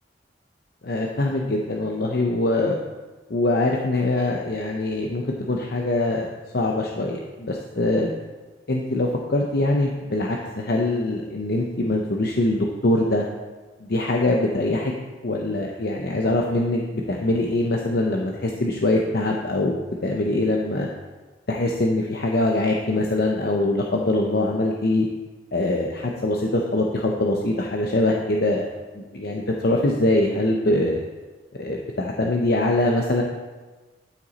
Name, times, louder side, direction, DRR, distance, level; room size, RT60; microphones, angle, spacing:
voice 1, 0.8-2.8 3.3-8.1 8.7-13.3 13.8-14.9 15.2-16.8 17.1-20.9 21.5-25.1 25.5-28.7 28.9-31.0 31.5-33.2, left 2 dB, 55° left, 0 dB, 0.8 m, -23 dB
12.0 x 6.0 x 4.1 m, 1.3 s
head